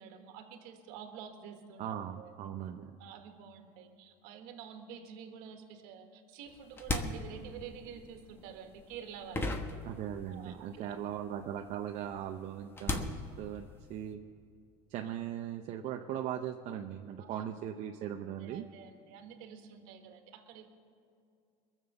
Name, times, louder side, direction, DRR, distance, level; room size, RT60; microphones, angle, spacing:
voice 1, 0.0-2.3 3.0-9.8 10.3-10.9 15.0-15.1 17.2-17.4 18.4-20.7, right 7 dB, 75° right, 5 dB, 1.7 m, -48 dB
voice 2, 1.8-2.9 9.8-14.2 14.9-18.6, right 10 dB, 55° right, 4 dB, 0.7 m, -39 dB
sound 1, 6.5-10.6 10.8-14.1, left 2 dB, 15° left, 1.2 m, -38 dB
22.0 x 7.4 x 6.8 m, 2.4 s
supercardioid pair, 120°, 14 cm